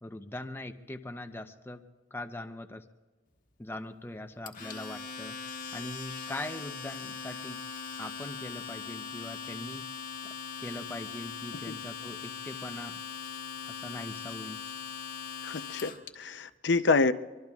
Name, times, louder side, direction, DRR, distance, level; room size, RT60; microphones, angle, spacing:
voice 1, 0.0-1.8 2.1-2.8 3.6-5.4 5.7-7.6 8.0-9.9 10.2-10.3 10.6-13.0 13.7-14.6, left 1 dB, 15° left, 7 dB, 0.7 m, -41 dB
Domestic sounds home sounds, 4.5-16.1, left 6 dB, 50° left, 1.4 m, -40 dB
voice 2, 15.4-17.1, left 3 dB, 75° left, 10 dB, 0.6 m, -27 dB
24.0 x 24.0 x 2.4 m, 1.3 s
head